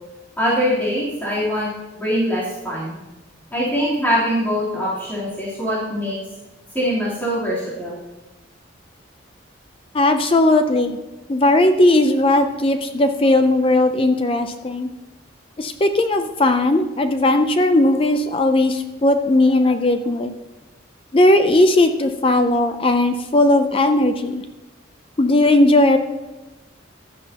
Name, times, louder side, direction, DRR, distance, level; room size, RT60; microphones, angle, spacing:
voice 1, 0.4-2.9 3.5-6.2 6.7-8.0, equal, 10° left, -10 dB, 3.3 m, -23 dB
voice 2, 9.9-11.0 11.3-14.9 15.6-20.3 21.1-24.4 25.2-26.0, left 2 dB, 25° left, 7 dB, 0.5 m, -17 dB
15.0 x 10.5 x 2.9 m, 1.1 s
head